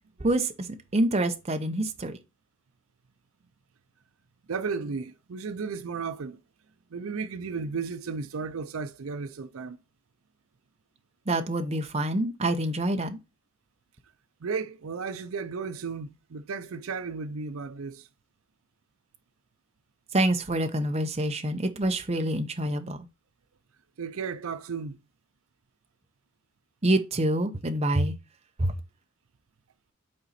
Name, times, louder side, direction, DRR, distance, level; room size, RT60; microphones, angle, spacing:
voice 1, 0.2-2.2 11.3-13.2 20.1-23.1 26.8-28.1 28.6-28.7, right 1 dB, 30° right, 0.8 m, -26 dB
voice 2, 4.5-6.4 6.9-9.8 14.4-18.1 24.0-25.0, right 5 dB, 75° right, 0.5 m, -34 dB
8.5 x 4.1 x 4.1 m
head